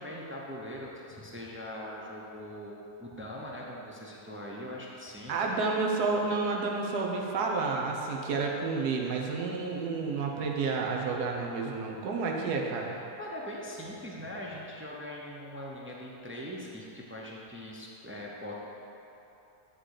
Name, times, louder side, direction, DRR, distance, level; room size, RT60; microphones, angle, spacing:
voice 1, 0.0-5.5 13.2-18.5, left 1 dB, 20° right, -4 dB, 0.3 m, -41 dB
voice 2, 5.3-13.0, right 4 dB, 80° right, 0 dB, 1.4 m, -30 dB
10.0 x 3.9 x 6.5 m, 3.0 s
omnidirectional pair, 1.7 m